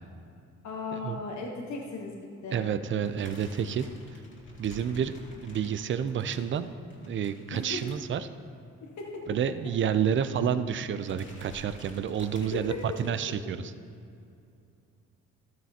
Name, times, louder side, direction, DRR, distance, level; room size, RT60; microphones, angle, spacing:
voice 1, 0.6-2.2 2.4-2.7 7.5-7.8 9.0-9.3 12.4-12.8, left 3 dB, 65° left, 0 dB, 1.2 m, -36 dB
voice 2, 2.5-3.9 4.6-5.1 5.4-6.7 7.0-8.3 9.3-13.7, right 8 dB, 40° right, 12 dB, 0.5 m, -29 dB
sound 1, 3.0-8.6 8.9-9.1 9.3-9.4 10.4-10.7 10.9-13.3, left 1 dB, 40° left, 2.1 m, -51 dB
12.0 x 9.3 x 2.8 m, 2.5 s
cardioid pair, 90°, 30 cm